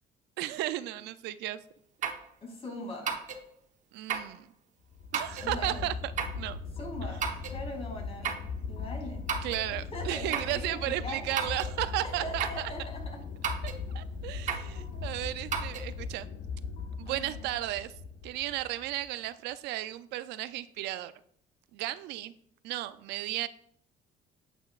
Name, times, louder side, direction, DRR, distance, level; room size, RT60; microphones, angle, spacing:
voice 1, 0.4-1.6 3.9-4.5 5.1-6.1 6.4-6.6 9.4-12.7 13.9-16.3 17.0-17.9 18.2-21.1 21.7-22.3 22.6-23.5, right 15 dB, 85° right, 13 dB, 0.5 m, -34 dB
sound 1, 2.0-2.3 3.1-3.4 4.1-4.4 5.1-5.5 6.2-6.4 7.2-7.6 8.2-8.5 9.3-9.7 10.3-10.6 11.4-11.7 12.4-12.7 13.4-13.8 14.5-14.7 15.5-15.9, right 6 dB, 45° right, 1.0 m, -33 dB
voice 2, 2.4-3.1 5.4-5.8 6.8-7.2 7.5-8.3 8.7-9.3 9.7-11.6 12.0-13.2 14.6-15.1 17.0-17.5, left 1 dB, 35° left, 1 dB, 2.7 m, -41 dB
sound 2, 4.9-19.1, left 5 dB, 75° left, 1.3 m, -39 dB
8.8 x 8.2 x 2.4 m, 0.65 s
cardioid pair, 110°, 17 cm